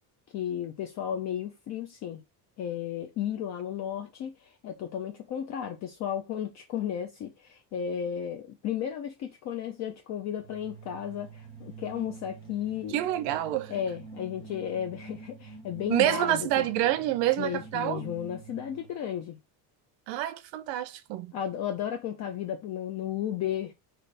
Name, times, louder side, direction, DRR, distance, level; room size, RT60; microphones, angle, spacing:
voice 1, 0.3-2.2 2.6-13.0 13.7-16.6 17.4-19.4 21.3-23.7, left 9 dB, 40° left, 0.5 m, -34 dB
sound 1, 10.4-19.0, right 4 dB, 10° right, 1.1 m, -47 dB
voice 2, 12.9-13.7 15.9-18.0 20.1-21.3, right 13 dB, 70° right, 0.6 m, -27 dB
3.3 x 2.7 x 4.0 m
cardioid pair, 170°, 45 cm